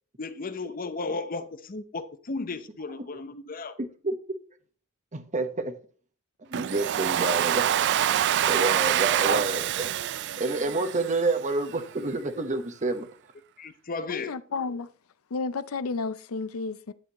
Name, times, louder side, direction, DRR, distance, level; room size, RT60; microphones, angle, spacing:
voice 1, 0.2-3.7 13.6-14.3, left 3 dB, 40° left, 0.7 m, -34 dB
voice 2, 3.8-4.1 5.1-5.7 6.5-7.6 8.5-9.9 10.4-13.1, right 2 dB, 35° right, 1.1 m, -28 dB
Domestic sounds home sounds, 6.5-11.5, right 11 dB, 55° right, 0.3 m, -26 dB
voice 3, 14.1-14.9 15.3-16.9, left 4 dB, 80° left, 0.5 m, -32 dB
9.9 x 8.1 x 3.0 m
head